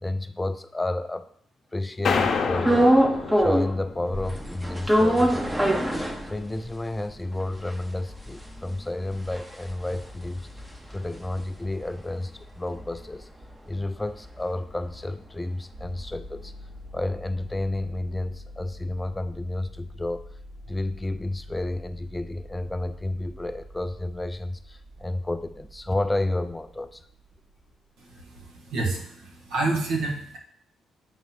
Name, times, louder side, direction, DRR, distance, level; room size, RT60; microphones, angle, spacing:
voice 1, 0.0-1.3 1.7-3.0 3.4-5.6 6.0-10.5 10.9-13.3 13.7-16.5 16.9-20.3 20.7-27.1, left 2 dB, 15° left, 11 dB, 0.4 m, -31 dB
sound 1, 2.0-4.5, left 5 dB, 55° left, 0.8 m, -28 dB
sound 2, 2.6-3.8 4.1-6.7 7.1-7.2 7.4-11.9 12.2-16.3, right 1 dB, 10° right, 0.8 m, -25 dB
sound 3, 15.7-28.3, left 1 dB, 65° right, 2.8 m, -45 dB
voice 2, 28.0-30.4, right 3 dB, 85° right, 1 dB, 1.4 m, -29 dB
7.3 x 3.0 x 5.7 m, 0.64 s
cardioid pair, 90°, 0 cm